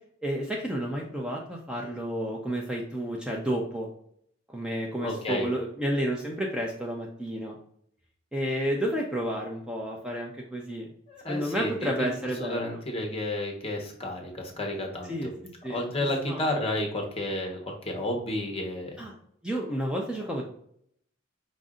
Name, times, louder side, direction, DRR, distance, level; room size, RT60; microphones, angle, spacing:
voice 1, 0.2-3.9 4.5-7.6 8.3-10.9 11.3-12.8 15.1-15.8 16.3-16.4 19.0-19.1 19.4-20.4, equal, 5° right, -1 dB, 0.5 m, -31 dB
voice 2, 5.0-5.5 11.1-12.1 12.4-15.3 15.7-19.0, left 1 dB, 30° left, 2 dB, 1.1 m, -31 dB
5.0 x 2.6 x 3.6 m, 0.68 s
head